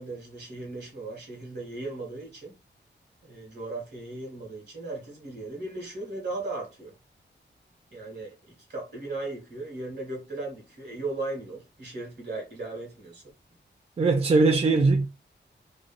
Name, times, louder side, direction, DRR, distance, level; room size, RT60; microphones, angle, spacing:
voice 1, 0.0-2.6 3.2-6.9 7.9-13.2, right 2 dB, 60° right, 1.7 m, -37 dB
voice 2, 14.0-15.1, right 3 dB, 30° right, 0.3 m, -20 dB
3.2 x 2.5 x 2.5 m
wide cardioid pair, 125°, 19 cm